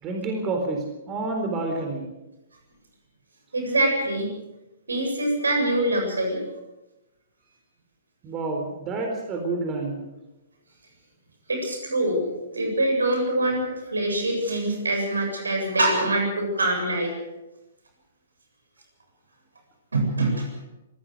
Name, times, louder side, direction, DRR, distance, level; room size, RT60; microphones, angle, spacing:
voice 1, 0.0-2.1 8.2-10.0, right 3 dB, 25° right, 3 dB, 4.2 m, -29 dB
voice 2, 3.5-4.3 4.9-6.4 11.5-12.3 12.5-17.2 19.9-20.5, right 1 dB, 75° right, 3 dB, 7.7 m, -24 dB
25.5 x 16.0 x 6.5 m, 1.0 s
figure-of-eight pair, 120°, 0 cm